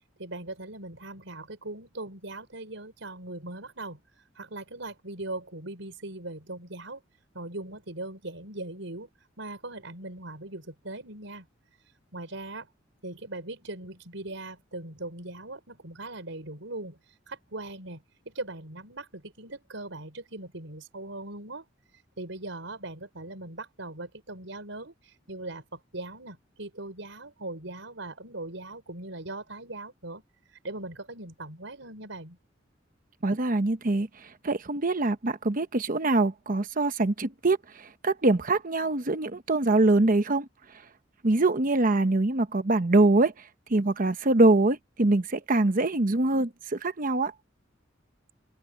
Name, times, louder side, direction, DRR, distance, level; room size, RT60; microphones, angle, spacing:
voice 1, 0.2-4.0 4.3-7.0 7.3-9.1 9.4-11.5 12.1-12.7 13.0-17.0 17.3-21.6 22.2-30.2 30.5-32.4, right 2 dB, 80° right, 5.0 m, -40 dB
voice 2, 33.2-34.1 34.4-40.5 41.2-43.3 43.7-47.3, right 2 dB, 45° right, 1.0 m, -24 dB
open air
head